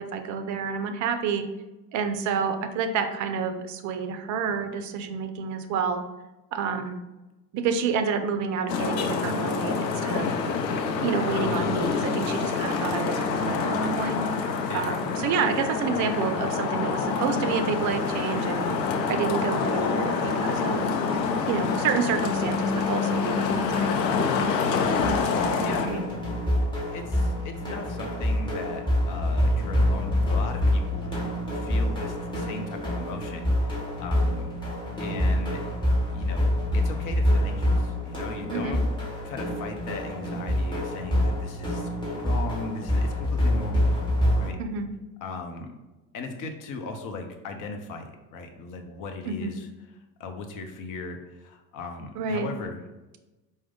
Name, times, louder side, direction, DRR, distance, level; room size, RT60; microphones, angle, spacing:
voice 1, 0.0-1.4 1.9-6.0 6.5-7.0 7.5-10.3 11.0-14.2 14.7-18.7 19.1-20.9 21.5-24.0 38.5-38.8 44.6-44.9 49.3-49.5 52.2-52.5, right 6 dB, 40° right, 7 dB, 0.5 m, -29 dB
Traffic noise roadway noise, 8.7-25.9, left 5 dB, 85° left, 0.6 m, -26 dB
voice 2, 11.4-11.8 14.7-14.9 24.2-26.1 26.9-31.2 31.5-34.5 35.0-35.6 36.1-38.8 39.2-41.9 42.1-43.9 44.4-44.6 45.2-45.7 46.1-49.7 50.2-52.8, left 3 dB, 40° left, 5 dB, 0.7 m, -38 dB
sound 1, 25.0-44.5, left 1 dB, 10° left, 1.4 m, -26 dB
4.6 x 2.2 x 3.6 m, 1.1 s
hypercardioid pair, 75°, 49 cm